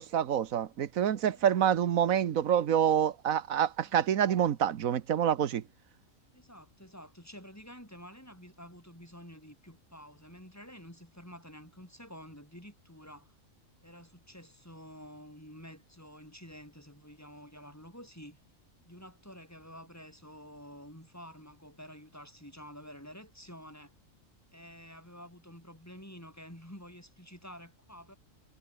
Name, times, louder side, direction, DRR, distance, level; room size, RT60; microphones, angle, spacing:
voice 1, 0.0-5.6, right 9 dB, 85° right, 1.4 m, -27 dB
voice 2, 1.3-2.1 3.8-4.0 6.3-13.3 13.8-18.4 18.8-23.9 24.5-28.2, equal, 10° left, 8.0 m, -50 dB
omnidirectional pair, 1.4 m